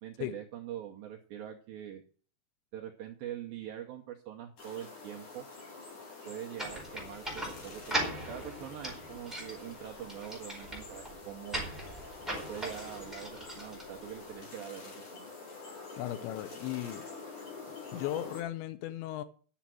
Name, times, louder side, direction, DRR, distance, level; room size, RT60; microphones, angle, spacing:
voice 1, 0.0-2.0 2.7-5.4 6.2-11.6 12.5-15.3, right 11 dB, 75° right, 2.2 m, -44 dB
sound 1, 4.6-18.4, left 4 dB, 45° left, 5.5 m, -47 dB
sound 2, 6.6-14.4, right 1 dB, ahead, 4.1 m, -39 dB
voice 2, 16.0-17.1 17.9-19.2, left 13 dB, 85° left, 3.1 m, -36 dB
10.5 x 7.2 x 7.5 m
omnidirectional pair, 5.2 m